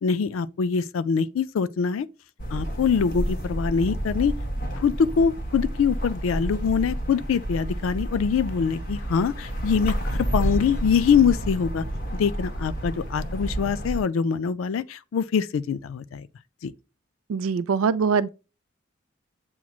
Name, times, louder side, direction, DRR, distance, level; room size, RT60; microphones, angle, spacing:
voice 1, 0.0-2.1 2.5-4.3 4.8-11.8 12.2-16.3 16.6-16.7, left 6 dB, 80° left, 0.4 m, -24 dB
sound 1, 2.4-14.0, right 1 dB, 45° left, 1.2 m, -30 dB
voice 2, 17.3-18.3, right 5 dB, 90° right, 0.4 m, -23 dB
7.1 x 3.0 x 2.3 m
head